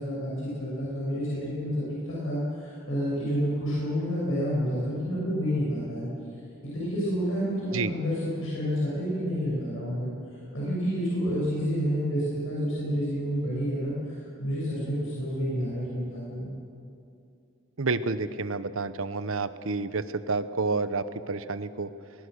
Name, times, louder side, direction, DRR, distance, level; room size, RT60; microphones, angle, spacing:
voice 1, 0.0-6.1 6.7-10.1 10.5-16.5, equal, 75° left, -7 dB, 7.0 m, -29 dB
voice 2, 17.8-21.9, right 3 dB, 85° right, 13 dB, 0.9 m, -29 dB
21.5 x 20.5 x 6.5 m, 2.5 s
head